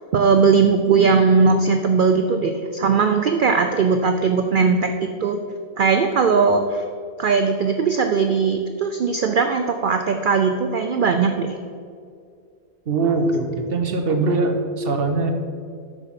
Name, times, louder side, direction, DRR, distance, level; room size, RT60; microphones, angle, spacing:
voice 1, 0.1-5.4 5.8-6.8 7.2-11.6, right 5 dB, 85° right, 6 dB, 0.4 m, -19 dB
voice 2, 12.9-15.3, right 3 dB, 50° right, 4 dB, 1.0 m, -21 dB
6.6 x 6.1 x 5.8 m, 2.2 s
omnidirectional pair, 1.5 m